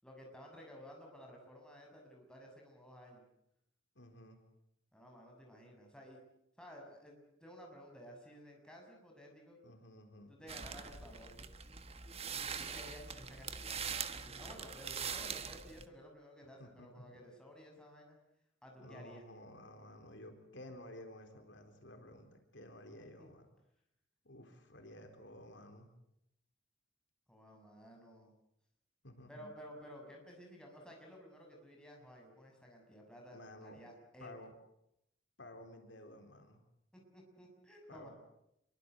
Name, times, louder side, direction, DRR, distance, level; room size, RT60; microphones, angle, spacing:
voice 1, 0.0-3.2 4.9-6.2 6.6-9.6 10.3-11.5 12.3-18.2 18.6-19.2 23.2-23.3 27.3-28.3 29.3-34.3 36.9-38.1, equal, 5° left, 0 dB, 6.9 m, -54 dB
voice 2, 4.0-4.4 9.6-10.7 16.6-17.2 18.8-23.5 24.2-25.9 29.0-29.6 33.3-33.8 34.2-34.5 35.4-36.6 37.9-38.1, left 1 dB, 70° left, 5 dB, 4.2 m, -53 dB
sound 1, 10.5-15.9, right 6 dB, 30° right, 1.3 m, -43 dB
27.0 x 23.5 x 8.1 m, 0.79 s
head